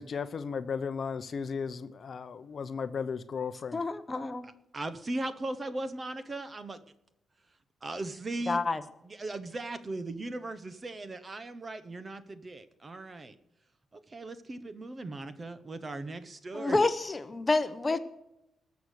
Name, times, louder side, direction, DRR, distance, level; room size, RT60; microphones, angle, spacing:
voice 1, 0.0-3.8, left 6 dB, 45° left, 11 dB, 0.7 m, -35 dB
voice 2, 3.7-4.4 8.5-8.8 16.5-18.0, left 3 dB, 20° left, 11 dB, 1.0 m, -28 dB
voice 3, 4.4-6.8 7.8-8.6 9.0-13.3 13.9-16.8, right 2 dB, 25° right, 13 dB, 0.9 m, -38 dB
19.5 x 7.2 x 6.6 m, 0.86 s
cardioid pair, 140°, 0 cm